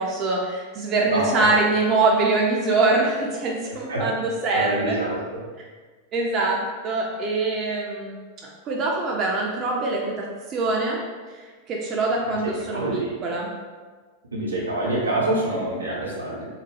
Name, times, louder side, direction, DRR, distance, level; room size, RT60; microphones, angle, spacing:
voice 1, 0.0-5.0 6.1-8.2 8.7-11.0 11.3-13.5, right 3 dB, 35° right, -2 dB, 0.4 m, -24 dB
voice 2, 1.0-1.4 3.9-4.0 4.5-5.4 12.2-13.2 14.3-16.5, right 1 dB, 75° right, -4 dB, 0.7 m, -26 dB
2.8 x 2.1 x 2.9 m, 1.4 s
figure-of-eight pair, 90°, 0 cm